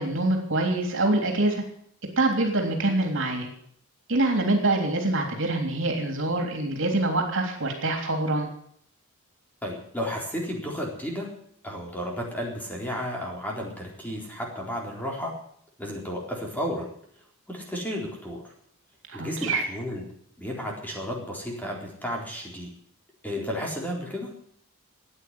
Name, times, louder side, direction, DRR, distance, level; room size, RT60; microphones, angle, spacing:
voice 1, 0.0-1.6 2.2-3.5 4.1-8.5 19.1-19.6, right 2 dB, 60° right, 3 dB, 3.4 m, -25 dB
voice 2, 9.6-11.3 11.6-15.3 15.8-16.9 17.5-18.5 19.1-20.0 20.4-22.7 23.2-24.3, equal, 10° left, -1 dB, 4.0 m, -33 dB
14.5 x 9.5 x 9.5 m, 0.65 s
head